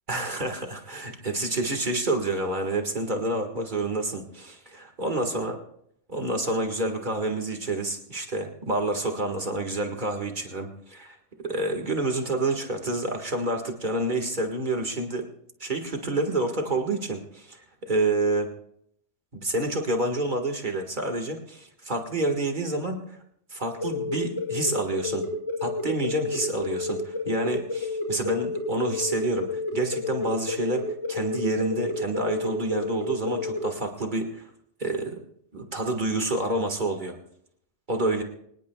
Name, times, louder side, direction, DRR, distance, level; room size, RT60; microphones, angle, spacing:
voice 1, 0.1-5.6 6.1-11.2 11.4-15.3 15.6-18.5 19.3-23.2 23.5-25.2 25.6-34.4 34.8-35.2 35.5-37.2 37.9-38.2, right 2 dB, 40° right, 4 dB, 1.9 m, -28 dB
sound 1, 23.8-33.6, left 4 dB, 80° left, 6.2 m, -31 dB
25.0 x 19.0 x 2.3 m, 0.70 s
omnidirectional pair, 1.3 m